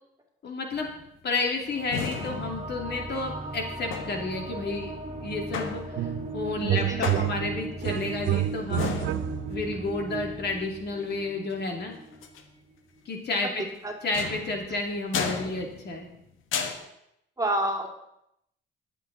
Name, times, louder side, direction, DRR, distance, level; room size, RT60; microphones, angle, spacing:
voice 1, 0.4-0.9 1.2-4.9 5.2-9.1 9.5-11.9 13.1-13.6 14.0-16.1, left 3 dB, 55° left, 2 dB, 2.6 m, -31 dB
sound 1, 0.7-1.2 1.9-3.2 3.9-4.5 5.5-6.3 7.0-7.8 8.8-9.8 12.1-12.4 14.1-16.2 16.5-16.7, left 6 dB, 85° left, 1.3 m, -34 dB
sound 2, 1.6-12.5, right 1 dB, 35° right, 1.9 m, -38 dB
sound 3, 6.0-6.3 6.6-9.7, right 16 dB, 75° right, 0.5 m, -29 dB
voice 2, 6.7-7.2 13.4-13.9 17.4-18.0, right 1 dB, 15° right, 1 dB, 2.6 m, -30 dB
20.5 x 7.8 x 4.0 m, 0.79 s
cardioid pair, 90°, 20 cm